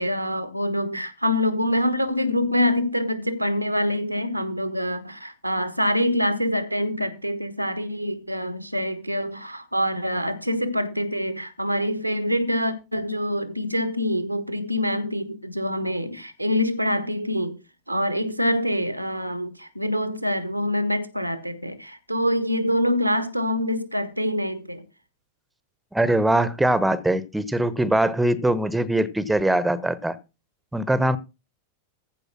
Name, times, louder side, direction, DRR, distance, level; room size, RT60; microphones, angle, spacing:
voice 1, 0.0-17.6 17.9-24.8, left 1 dB, 90° right, 1.4 m, -25 dB
voice 2, 25.9-30.2 30.7-31.2, right 1 dB, 5° right, 1.0 m, -22 dB
15.0 x 5.3 x 6.0 m
figure-of-eight pair, 90°, 0 cm